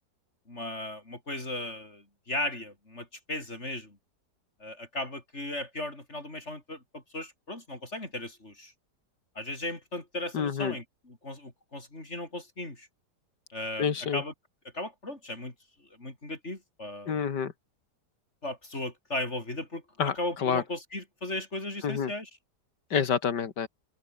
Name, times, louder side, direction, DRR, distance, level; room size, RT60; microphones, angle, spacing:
voice 1, 0.5-4.0 4.6-8.7 9.4-12.9 13.5-14.3 14.7-15.5 16.0-17.2 18.4-19.8 20.1-22.3, left 1 dB, 40° left, 5.2 m, -36 dB
voice 2, 10.3-10.7 13.8-14.2 17.1-17.5 20.0-20.6 21.8-22.1 22.9-23.7, left 7 dB, 80° left, 2.4 m, -28 dB
open air
omnidirectional pair, 1.8 m